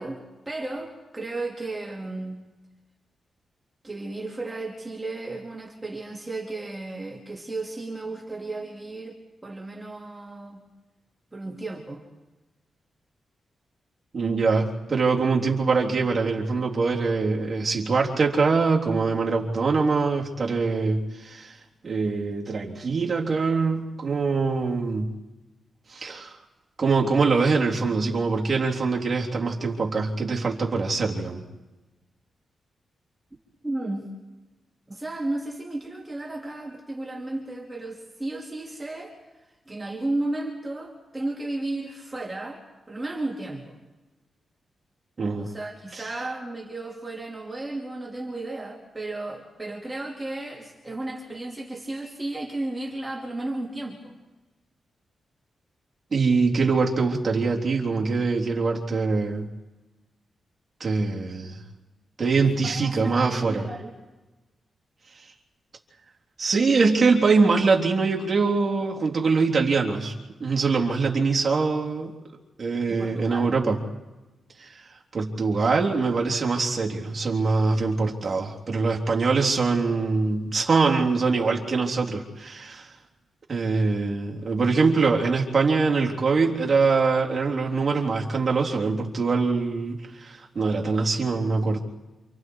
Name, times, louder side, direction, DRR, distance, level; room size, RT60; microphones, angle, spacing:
voice 1, 0.0-2.4 3.8-10.6 11.3-12.0 33.6-34.1 34.9-39.1 39.6-42.6 42.9-43.7 45.4-54.1 62.4-63.9 72.9-73.7, right 2 dB, 15° right, -1 dB, 3.3 m, -34 dB
voice 2, 14.1-21.6 21.8-25.1 25.9-26.3 26.8-31.4 45.2-45.5 45.9-46.0 56.1-59.5 60.8-61.6 62.2-63.7 66.4-70.1 70.4-72.1 72.6-73.8 74.6-74.8 75.1-82.9 83.5-91.8, right 4 dB, 40° right, -1 dB, 3.5 m, -23 dB
28.5 x 27.5 x 4.8 m, 1.1 s
cardioid pair, 105°, 0 cm